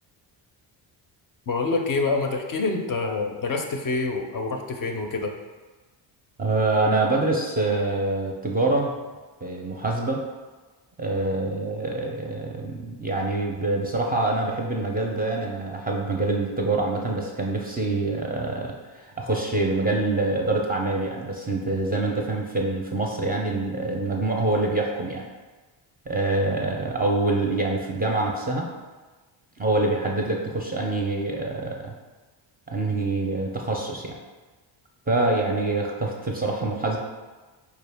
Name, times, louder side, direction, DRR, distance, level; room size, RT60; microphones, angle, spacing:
voice 1, 1.5-5.3, left 3 dB, 45° left, 3 dB, 0.5 m, -26 dB
voice 2, 6.4-8.9 9.4-10.2 11.0-25.2 26.1-28.7 29.6-31.9 32.7-34.2 35.1-37.0, right 2 dB, 20° right, -1 dB, 0.5 m, -25 dB
4.4 x 2.3 x 3.4 m, 1.3 s
cardioid pair, 85°, 48 cm